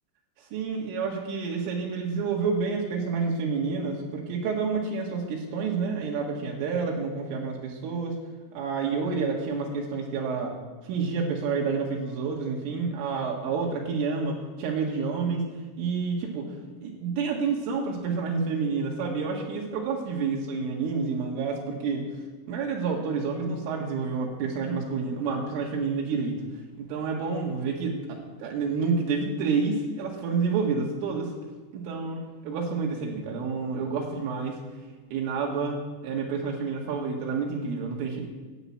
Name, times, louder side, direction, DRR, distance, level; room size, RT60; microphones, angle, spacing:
voice 1, 0.5-8.2 8.5-10.5 10.8-15.4 15.8-16.5 16.8-22.1 22.5-26.4 26.8-31.3 31.7-32.2 32.5-34.6 35.1-38.3, right 5 dB, 85° right, -1 dB, 4.4 m, -29 dB
13.0 x 10.0 x 8.5 m, 1.3 s
omnidirectional pair, 5.6 m